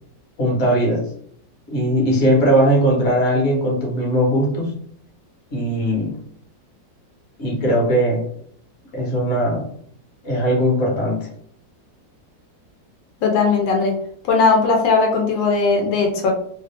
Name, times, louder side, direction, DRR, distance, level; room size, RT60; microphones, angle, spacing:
voice 1, 0.4-1.1 1.7-4.7 5.5-6.2 7.4-8.2 8.9-9.6 10.2-11.3, equal, 40° left, -2 dB, 1.3 m, -19 dB
voice 2, 13.2-14.0 14.3-16.3, left 4 dB, 85° left, 1 dB, 1.4 m, -18 dB
3.2 x 2.5 x 3.3 m, 0.63 s
omnidirectional pair, 2.0 m